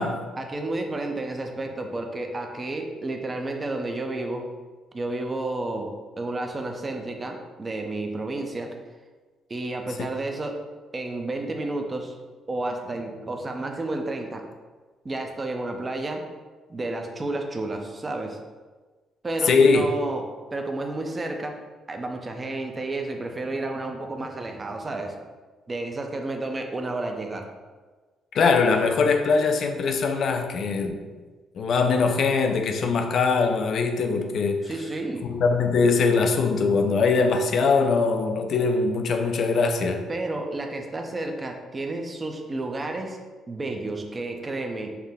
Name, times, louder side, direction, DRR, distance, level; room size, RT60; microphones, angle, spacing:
voice 1, 0.4-4.5 4.9-8.7 9.5-10.6 10.9-12.2 12.5-14.4 15.0-16.2 16.7-18.4 19.2-21.6 21.9-25.1 25.7-27.5 34.6-35.3 40.1-43.2 43.5-45.0, right 2 dB, 25° right, 3 dB, 0.5 m, -31 dB
voice 2, 19.5-19.9 28.3-31.0 31.6-34.7 35.2-40.0, left 4 dB, 60° left, 5 dB, 0.4 m, -22 dB
5.7 x 2.1 x 3.5 m, 1.4 s
cardioid pair, 105°, 0 cm